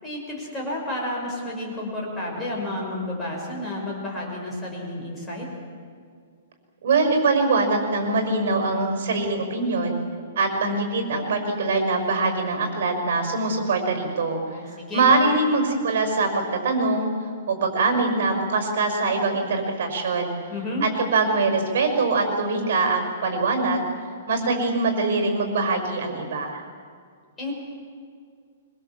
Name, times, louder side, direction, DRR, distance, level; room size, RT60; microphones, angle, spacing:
voice 1, 0.0-5.5 14.5-15.0 20.5-20.8 27.4-27.5, left 1 dB, 10° left, -3 dB, 5.8 m, -31 dB
voice 2, 6.8-10.0 10.4-14.4 14.9-17.1 17.5-20.4 20.8-23.8 24.3-26.6, right 3 dB, 60° right, 4 dB, 5.9 m, -23 dB
25.5 x 24.0 x 7.5 m, 2.1 s
hypercardioid pair, 170°, 0 cm